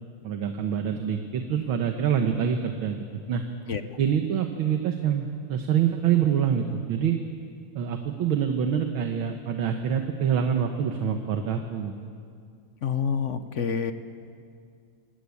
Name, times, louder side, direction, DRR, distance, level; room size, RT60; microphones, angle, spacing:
voice 1, 0.2-3.4 4.0-7.2 7.8-11.9, right 8 dB, 90° right, 5 dB, 2.0 m, -26 dB
voice 2, 12.8-13.9, left 6 dB, 50° left, 10 dB, 0.9 m, -27 dB
25.5 x 20.0 x 8.5 m, 2.4 s
omnidirectional pair, 2.2 m